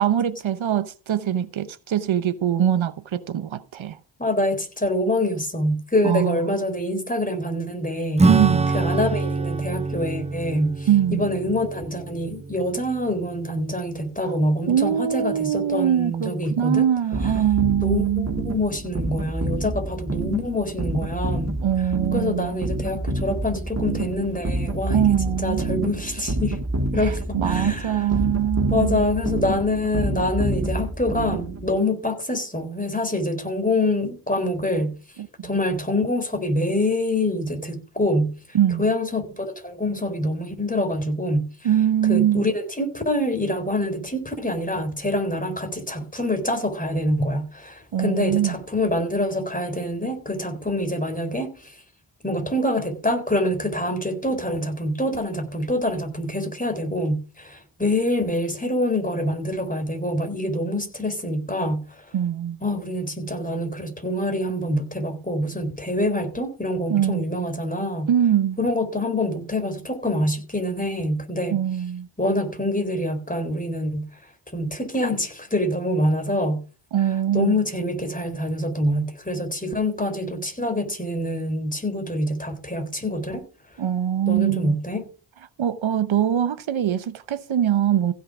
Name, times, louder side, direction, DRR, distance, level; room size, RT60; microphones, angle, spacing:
voice 1, 0.0-4.0 6.0-6.5 8.3-8.7 10.9-11.3 14.7-18.3 21.6-22.6 24.9-25.6 27.0-29.0 35.2-35.5 38.5-38.9 41.6-42.5 47.9-48.6 62.1-62.6 66.9-67.2 68.1-68.6 71.5-72.1 76.9-77.6 83.8-84.8 85.6-88.1, right 10 dB, 75° right, 0.9 m, -22 dB
voice 2, 4.2-8.3 8.7-16.9 17.2-17.3 17.8-21.6 22.1-26.6 26.9-28.1 28.7-35.0 35.4-38.4 38.8-41.5 42.1-51.8 52.2-62.1 62.6-68.1 68.6-71.6 72.2-74.1 74.5-76.6 77.3-83.4 84.3-85.1, left 1 dB, 15° left, 3.8 m, -25 dB
Acoustic guitar / Strum, 8.2-14.1, right 3 dB, 15° right, 0.5 m, -26 dB
sound 1, 17.1-31.8, right 2 dB, 35° right, 2.8 m, -28 dB
15.5 x 6.6 x 4.9 m
cardioid pair, 60°, 47 cm